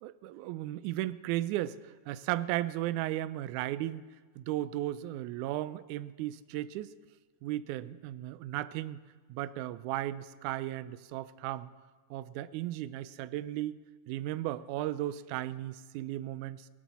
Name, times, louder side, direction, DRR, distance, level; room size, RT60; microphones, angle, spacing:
voice 1, 0.0-4.1 4.4-6.9 7.4-9.0 9.3-11.7 12.1-13.8 14.1-16.7, right 14 dB, 80° right, 15 dB, 1.9 m, -35 dB
19.0 x 13.0 x 4.2 m, 1.4 s
omnidirectional pair, 3.7 m